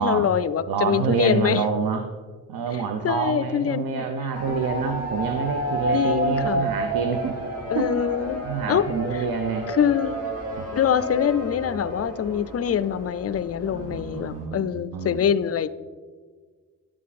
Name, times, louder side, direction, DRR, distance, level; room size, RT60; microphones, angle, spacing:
voice 1, 0.0-1.6 2.7-4.0 4.5-5.1 5.9-6.8 7.7-8.8 9.1-9.3 9.7-10.2 10.7-15.7, left 8 dB, 45° left, 14 dB, 0.5 m, -24 dB
voice 2, 0.7-2.1 2.5-7.4 7.7-7.9 8.4-9.7 10.6-10.7 13.7-15.2, right 6 dB, 85° right, 6 dB, 0.8 m, -27 dB
sound 1, 4.3-14.4, right 1 dB, 45° right, 3.0 m, -30 dB
11.0 x 7.5 x 4.2 m, 1.5 s
cardioid pair, 100°, 35 cm